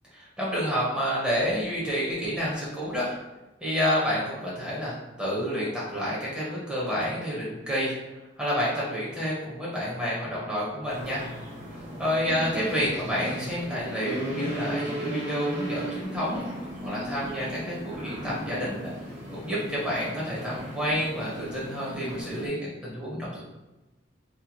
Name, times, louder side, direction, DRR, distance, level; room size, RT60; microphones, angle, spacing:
voice 1, 0.4-3.2 3.6-4.9 5.2-7.9 8.4-11.3 12.0-16.5 16.8-18.9 19.3-22.6 22.8-23.4, equal, 5° right, -7 dB, 0.7 m, -29 dB
sound 1, 10.9-22.5, right 1 dB, 45° right, 1.0 m, -36 dB
2.8 x 2.7 x 2.2 m, 1.1 s
head